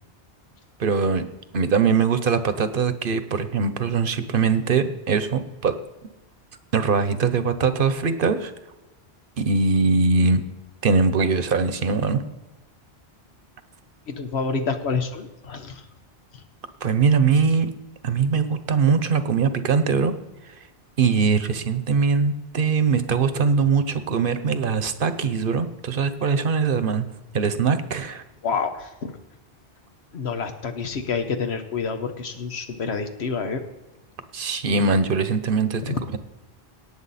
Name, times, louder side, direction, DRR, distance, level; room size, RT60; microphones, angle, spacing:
voice 1, 0.8-1.2 1.5-5.8 6.7-8.5 9.4-10.4 10.8-12.2 16.8-17.7 18.0-20.1 21.0-27.1 27.3-28.2 34.3-36.2, right 5 dB, 60° right, 11 dB, 1.0 m, -21 dB
voice 2, 14.1-15.9 16.3-16.4 28.4-29.2 30.1-33.6 35.8-36.2, left 5 dB, 90° left, 7 dB, 1.3 m, -28 dB
18.0 x 7.1 x 4.2 m, 1.0 s
omnidirectional pair, 1.1 m